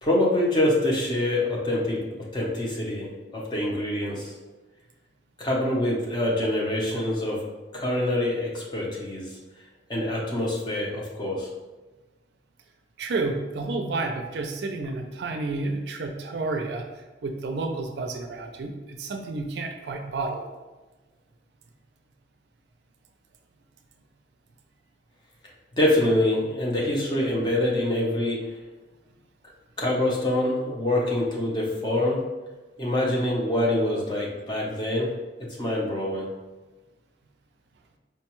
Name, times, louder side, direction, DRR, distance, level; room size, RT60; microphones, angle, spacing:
voice 1, 0.0-2.0 2.3-4.3 5.4-7.4 7.7-9.3 9.9-11.5 25.8-28.5 29.8-32.2 32.8-35.1 35.6-36.3, left 1 dB, 25° left, -3 dB, 0.7 m, -25 dB
voice 2, 13.0-16.8 17.2-20.4, right 3 dB, 65° right, 5 dB, 0.4 m, -30 dB
4.5 x 2.2 x 2.9 m, 1.2 s
head